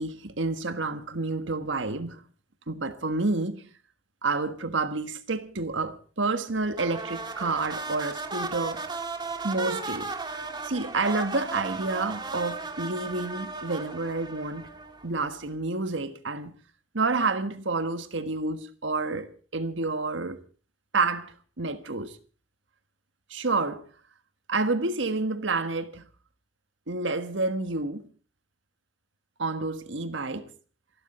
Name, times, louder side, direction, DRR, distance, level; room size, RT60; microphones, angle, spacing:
voice 1, 0.0-2.2 2.7-3.7 4.2-8.8 9.4-14.7 15.0-16.6 16.9-20.4 20.9-22.2 23.3-23.9 24.5-26.1 26.9-28.1 29.4-30.5, right 3 dB, 75° right, 1.5 m, -29 dB
sound 1, 6.7-15.2, right 4 dB, 25° right, 1.5 m, -35 dB
27.5 x 12.0 x 4.3 m
head